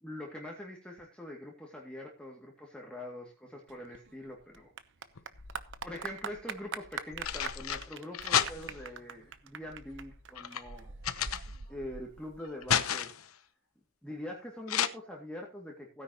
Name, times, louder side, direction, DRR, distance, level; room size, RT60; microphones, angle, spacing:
voice 1, 0.0-4.7 5.8-11.0 11.7-13.3 14.0-16.0, left 1 dB, 5° left, -1 dB, 2.3 m, -44 dB
Clapping / Applause, 3.7-12.7, right 6 dB, 55° right, 0.9 m, -44 dB
sound 1, 5.1-6.0 6.8-8.9 9.7-11.9 12.3-13.3 14.7-14.9, left 9 dB, 70° left, 1.0 m, -33 dB
16.5 x 10.0 x 3.0 m, 0.27 s
head